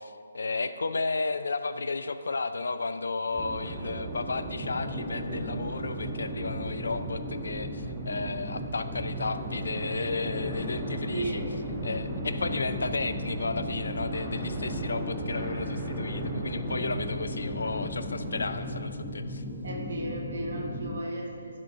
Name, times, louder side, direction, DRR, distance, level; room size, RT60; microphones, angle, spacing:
voice 1, 0.0-11.4 11.8-19.4, left 3 dB, 70° left, 11 dB, 0.4 m, -33 dB
sound 1, 3.3-18.7, right 2 dB, 10° right, 1.1 m, -36 dB
sound 2, 4.6-21.0, left 1 dB, 10° left, 0.7 m, -38 dB
voice 2, 11.1-11.5 19.6-21.6, right 2 dB, 60° right, -1 dB, 1.6 m, -35 dB
12.0 x 4.4 x 3.6 m, 2.3 s
figure-of-eight pair, 145°, 0 cm